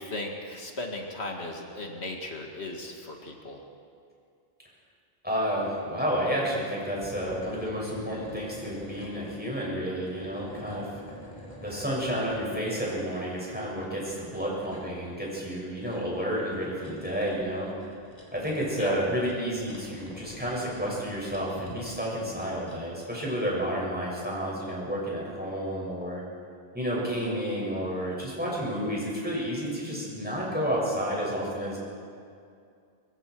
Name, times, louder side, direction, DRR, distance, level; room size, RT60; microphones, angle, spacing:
voice 1, 0.0-3.6 18.8-19.0, left 2 dB, 85° left, 1 dB, 2.3 m, -36 dB
voice 2, 5.2-10.9 11.6-17.7 18.3-26.2 26.7-31.8, equal, 10° right, -5 dB, 6.7 m, -30 dB
sound 1, 7.0-9.4 9.8-12.4 13.6-22.8, left 1 dB, 40° left, 3.7 m, -47 dB
24.0 x 24.0 x 4.8 m, 2.4 s
omnidirectional pair, 1.1 m